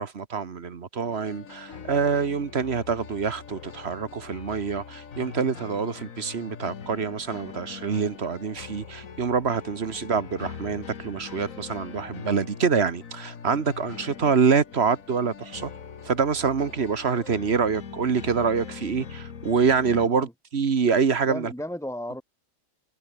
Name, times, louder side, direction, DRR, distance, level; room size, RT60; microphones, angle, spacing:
voice 1, 0.0-15.7 16.0-21.5, right 5 dB, 50° right, 1.6 m, -26 dB
sound 1, 1.0-20.1, left 6 dB, 80° left, 1.9 m, -42 dB
voice 2, 21.3-22.2, left 1 dB, ahead, 3.3 m, -36 dB
omnidirectional pair, 1.4 m